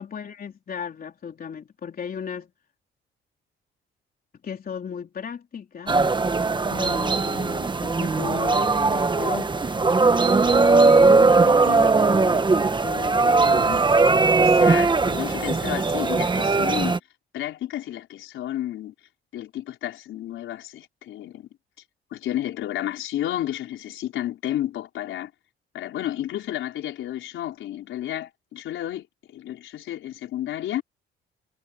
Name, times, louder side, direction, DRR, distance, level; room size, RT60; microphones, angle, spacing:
voice 1, 0.0-2.5 4.4-6.1 6.7-9.5 10.9-13.9, left 7 dB, 50° left, 3.6 m, -36 dB
sound 1, 5.9-17.0, right 3 dB, 25° right, 1.3 m, -19 dB
voice 2, 14.4-17.0 17.3-18.9 19.3-21.5 22.1-25.3 25.7-30.8, left 12 dB, 80° left, 4.4 m, -31 dB
cardioid pair, 90°, 20 cm